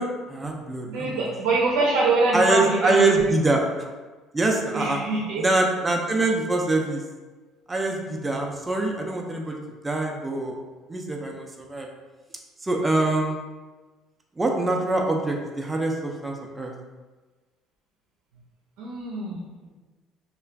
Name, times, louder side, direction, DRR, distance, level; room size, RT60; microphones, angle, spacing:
voice 1, 0.0-1.2 2.3-3.6 4.3-5.0 5.4-7.0 7.7-9.6 9.8-10.6 10.9-11.9 12.6-13.4 14.4-16.7, right 2 dB, 15° right, 1 dB, 0.4 m, -24 dB
voice 2, 0.9-3.3 4.7-5.4 18.8-19.4, right 3 dB, 80° right, -4 dB, 0.6 m, -24 dB
2.4 x 2.3 x 3.2 m, 1.3 s
supercardioid pair, 90°, 0 cm